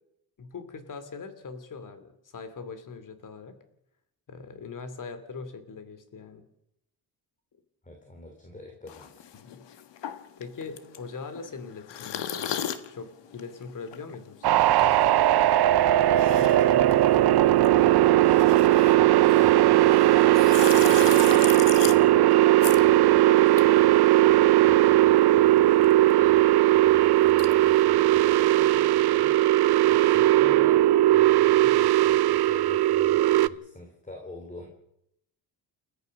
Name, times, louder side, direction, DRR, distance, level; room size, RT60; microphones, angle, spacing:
voice 1, 0.4-3.6 4.3-6.4 9.3-9.7 10.4-12.6 12.9-15.5, left 4 dB, 45° left, 11 dB, 2.7 m, -41 dB
voice 2, 7.8-9.2 15.9-18.6 18.9-20.0 20.5-22.4 22.7-23.3 24.1-29.3 29.9-30.8 31.1-34.7, left 2 dB, 20° left, 3 dB, 3.3 m, -44 dB
sound 1, 8.9-24.7 24.9-27.8, left 9 dB, 80° left, 1.5 m, -37 dB
sound 2, 14.4-33.5, right 14 dB, 65° right, 0.7 m, -19 dB
29.5 x 13.5 x 6.5 m, 0.81 s
cardioid pair, 135°, 42 cm